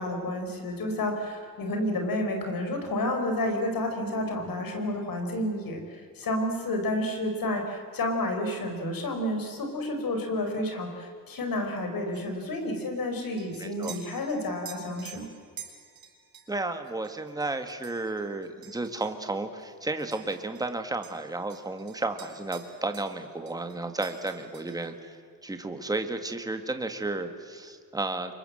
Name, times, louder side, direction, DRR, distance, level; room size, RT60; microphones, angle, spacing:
voice 1, 0.0-15.3, left 1 dB, 75° left, 4 dB, 5.1 m, -30 dB
sound 1, 12.1-20.8 21.0-23.2 23.5-25.0, right 7 dB, 90° right, 3.6 m, -49 dB
voice 2, 13.6-14.0 16.5-25.2 25.4-28.3, right 2 dB, 10° right, 7 dB, 1.6 m, -33 dB
29.0 x 24.0 x 7.7 m, 2.1 s
wide cardioid pair, 160°, 35 cm